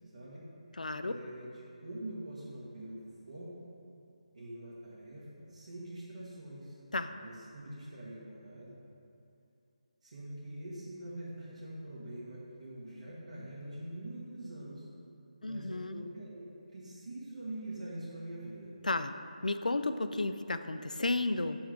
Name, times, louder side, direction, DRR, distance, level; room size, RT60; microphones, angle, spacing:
voice 1, 0.1-0.4 1.0-3.0 3.3-3.8 4.3-6.8 7.1-8.7 10.0-14.9 15.4-16.4 16.7-18.7, right 1 dB, 60° right, -8 dB, 1.5 m, -44 dB
voice 2, 0.8-1.1 6.9-7.1 15.4-16.0 18.8-19.2 19.4-21.6, left 2 dB, 85° left, 10 dB, 0.4 m, -33 dB
7.9 x 3.5 x 4.9 m, 2.7 s
figure-of-eight pair, 155°, 4 cm